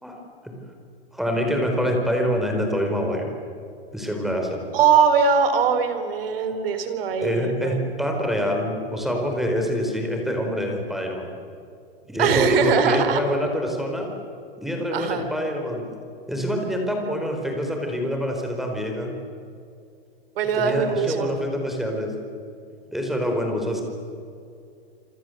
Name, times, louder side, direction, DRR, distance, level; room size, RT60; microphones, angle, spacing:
voice 1, 1.1-3.3 3.9-4.6 7.2-11.3 12.1-14.1 14.6-15.8 16.3-19.1 20.5-22.1 22.9-23.8, equal, ahead, 2 dB, 4.5 m, -25 dB
voice 2, 4.7-7.8 12.2-13.2 14.9-15.2 20.4-21.3, right 6 dB, 65° right, 9 dB, 4.3 m, -21 dB
28.0 x 26.0 x 8.0 m, 2.4 s
supercardioid pair, 155°, 31 cm